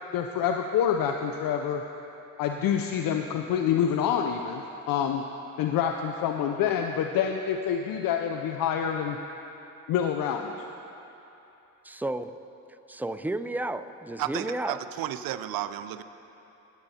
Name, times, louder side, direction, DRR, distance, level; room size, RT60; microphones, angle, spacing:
voice 1, 0.1-1.8 2.4-5.2 5.6-9.2 9.9-10.6, left 8 dB, 70° left, 4 dB, 0.5 m, -27 dB
voice 2, 11.8-12.3 12.9-14.8, right 2 dB, 5° right, 11 dB, 0.4 m, -32 dB
voice 3, 14.2-16.0, right 12 dB, 75° right, 12 dB, 0.6 m, -33 dB
19.0 x 8.1 x 2.8 m, 3.0 s
supercardioid pair, 55°, 36 cm